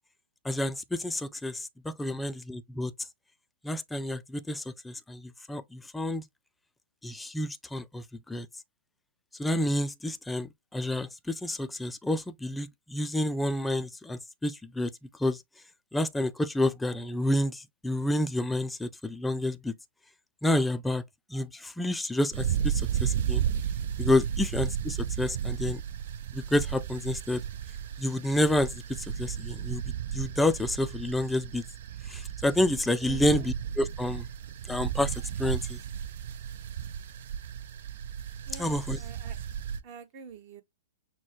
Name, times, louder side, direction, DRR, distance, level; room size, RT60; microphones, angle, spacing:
voice 1, 0.4-2.9 3.6-6.2 7.0-8.5 9.4-14.9 15.2-15.4 15.9-19.7 20.4-21.0 21.3-23.4 24.0-25.8 26.3-27.4 28.0-29.8 30.1-31.6 32.1-34.2 34.7-35.8 38.6-39.0, left 1 dB, 5° left, 0.4 m, -29 dB
sound 1, 22.3-39.8, right 9 dB, 60° right, 0.5 m, -33 dB
voice 2, 33.0-33.5 38.5-39.4 39.8-40.6, right 5 dB, 40° right, 1.2 m, -47 dB
6.1 x 2.2 x 2.8 m
hypercardioid pair, 130°, 0 cm